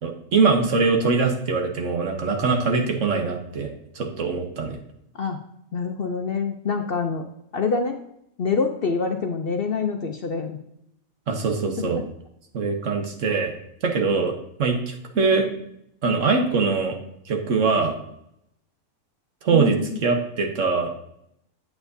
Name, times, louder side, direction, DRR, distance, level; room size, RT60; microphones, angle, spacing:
voice 1, 0.0-3.7 3.9-4.8 11.3-12.0 12.5-13.5 13.8-15.5 16.0-17.0 17.3-17.9 19.4-20.9, right 4 dB, 65° right, 4 dB, 1.4 m, -22 dB
voice 2, 5.7-7.2 7.5-8.0 8.4-10.6 11.8-12.0 19.5-20.0, left 5 dB, 55° left, 5 dB, 0.7 m, -26 dB
9.1 x 8.0 x 2.6 m, 0.76 s
omnidirectional pair, 1.4 m